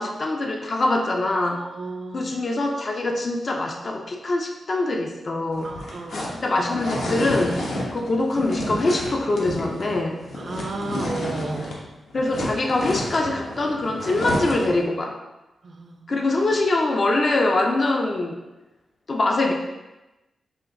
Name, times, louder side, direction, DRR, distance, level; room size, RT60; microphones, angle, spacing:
voice 1, 0.0-1.6 2.1-5.7 6.1-7.6 7.9-10.2 12.1-15.2 16.1-18.4 19.1-19.5, left 2 dB, 35° left, 2 dB, 0.4 m, -23 dB
voice 2, 1.5-2.3 5.6-6.3 10.3-11.8 15.6-16.2, right 2 dB, 45° right, 3 dB, 0.4 m, -33 dB
sound 1, 5.5-11.8 12.1-14.8, left 1 dB, 75° left, 0.8 m, -30 dB
5.6 x 2.4 x 2.6 m, 1.0 s
wide cardioid pair, 150°, 0 cm